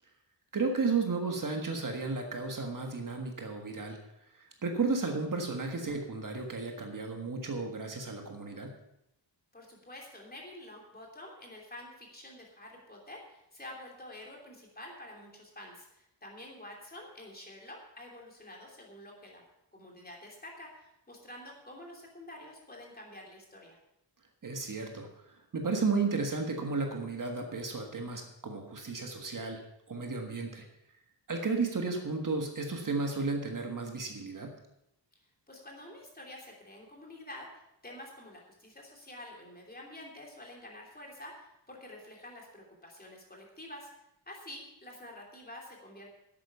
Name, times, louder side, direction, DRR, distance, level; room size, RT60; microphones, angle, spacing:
voice 1, 0.5-4.0 4.4-8.7 24.4-29.6 29.9-30.6 31.3-34.6, right 4 dB, 45° right, 3 dB, 1.6 m, -33 dB
voice 2, 9.5-19.4 19.7-23.8 35.5-43.9 44.3-46.1, left 1 dB, 20° left, -1 dB, 3.1 m, -48 dB
11.5 x 8.5 x 7.0 m, 0.82 s
wide cardioid pair, 175°, 44 cm